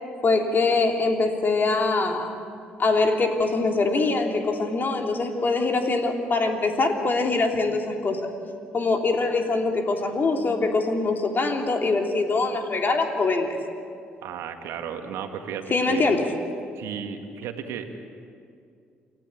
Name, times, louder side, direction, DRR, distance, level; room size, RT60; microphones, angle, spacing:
voice 1, 0.2-2.3 2.8-8.2 8.7-13.6 15.7-16.3, left 3 dB, 45° left, 3 dB, 3.2 m, -23 dB
voice 2, 14.2-16.1 16.8-17.9, right 8 dB, 70° right, 6 dB, 1.9 m, -34 dB
28.5 x 14.5 x 8.6 m, 2.4 s
hypercardioid pair, 50°, 5 cm